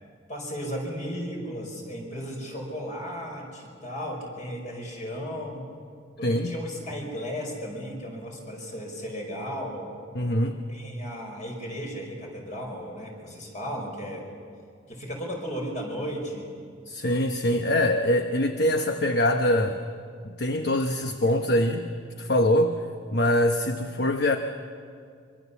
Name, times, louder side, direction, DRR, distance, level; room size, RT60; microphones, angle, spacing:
voice 1, 0.3-5.7 6.2-9.9 10.7-14.3 14.9-16.5, equal, 40° left, 1 dB, 5.4 m, -35 dB
voice 2, 6.2-6.5 10.1-10.6 16.9-19.8 20.4-21.9 22.2-22.8 23.1-24.4, left 1 dB, 55° left, 6 dB, 1.0 m, -23 dB
25.0 x 23.5 x 7.1 m, 2.3 s
head